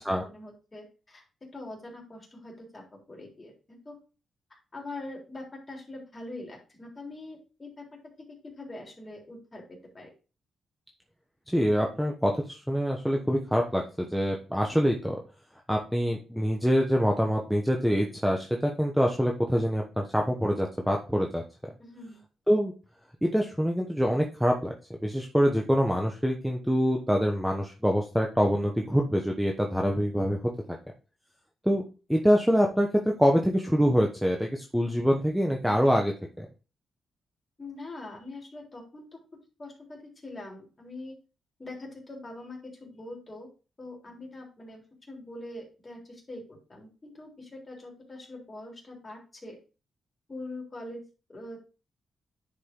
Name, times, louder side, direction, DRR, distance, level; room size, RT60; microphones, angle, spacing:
voice 1, 0.2-1.2 1.5-4.0 4.7-7.9 8.6-10.1 21.8-22.2 37.6-39.1 39.6-41.2 41.6-43.5 43.8-44.8 45.1-49.6 50.3-51.0 51.3-51.6, left 2 dB, 25° left, -1 dB, 3.6 m, -43 dB
voice 2, 11.5-15.2 15.7-21.4 22.5-22.7 23.2-24.7 25.0-30.4 31.6-31.8 32.1-36.5, equal, ahead, 1 dB, 1.0 m, -25 dB
10.0 x 5.0 x 3.8 m, 0.33 s
cardioid pair, 120°, 0 cm